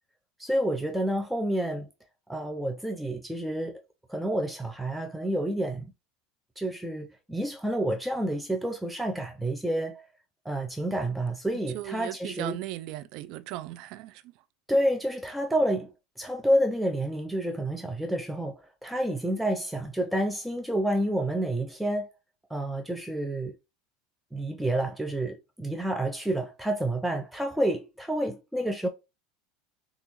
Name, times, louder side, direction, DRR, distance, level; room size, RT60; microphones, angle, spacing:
voice 1, 0.4-1.9 2.3-3.8 4.1-5.9 6.6-10.1 10.4-12.6 14.7-15.9 16.2-22.1 22.5-23.6 24.3-28.9, right 1 dB, 5° right, 0.6 m, -29 dB
voice 2, 11.7-14.3, right 15 dB, 60° right, 0.5 m, -37 dB
6.2 x 2.5 x 3.1 m
hypercardioid pair, 80°, 0 cm